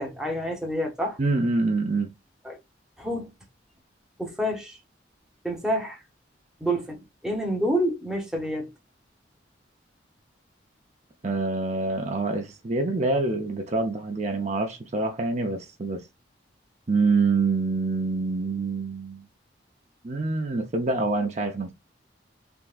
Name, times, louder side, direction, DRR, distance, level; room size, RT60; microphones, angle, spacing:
voice 1, 0.0-1.2 2.4-2.6 3.0-3.3 4.2-4.8 5.4-6.0 6.6-8.7, equal, 5° right, 0.9 m, -28 dB
voice 2, 1.2-2.1 11.2-16.0 16.9-19.2 20.0-21.7, right 3 dB, 40° right, 0.6 m, -26 dB
3.5 x 2.9 x 2.4 m
head